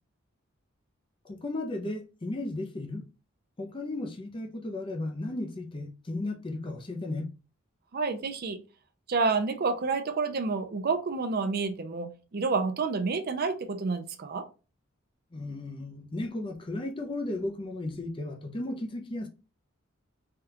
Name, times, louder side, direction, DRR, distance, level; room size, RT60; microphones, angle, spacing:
voice 1, 1.2-3.1 3.6-7.3 15.3-19.3, left 2 dB, 25° left, 0.5 m, -35 dB
voice 2, 7.9-8.6 9.1-14.4, right 4 dB, 50° right, 0.5 m, -29 dB
3.4 x 2.3 x 2.8 m
head